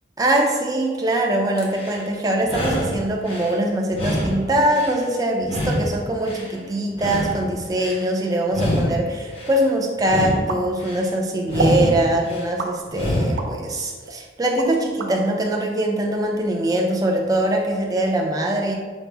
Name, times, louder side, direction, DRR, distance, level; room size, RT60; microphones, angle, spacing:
voice 1, 0.2-18.7, right 1 dB, 20° right, 0 dB, 0.5 m, -22 dB
sound 1, 1.6-2.0 2.4-3.5 3.9-5.0 5.4-6.5 6.9-8.0 8.5-9.6 10.0-11.0 11.4-12.5 12.9-13.5, equal, 30° left, 0.8 m, -26 dB
sound 2, 10.5-11.2 11.6-11.9 12.6-13.6 14.1-15.1, right 2 dB, 70° right, 0.5 m, -28 dB
5.3 x 2.1 x 4.5 m, 1.5 s
head